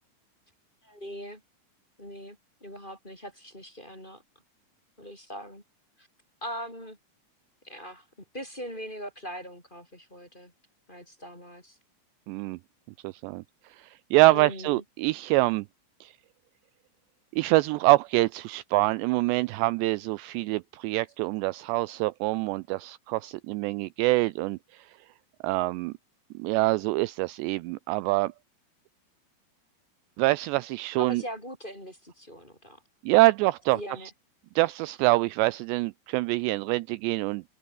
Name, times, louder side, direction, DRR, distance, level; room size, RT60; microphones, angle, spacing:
voice 1, 0.8-1.4 2.0-4.2 5.0-5.6 6.0-6.1 6.4-7.0 7.6-8.1 8.3-10.5 10.9-11.8 14.3-14.8 31.0-32.8 33.7-34.1, equal, 10° left, 4.0 m, -41 dB
voice 2, 12.3-12.6 13.0-13.4 13.8-15.7 16.0-16.1 17.3-24.9 25.4-25.9 26.3-28.3 30.2-31.2 33.0-33.8 34.6-37.4, right 20 dB, 80° right, 2.6 m, -25 dB
omnidirectional pair, 5.3 m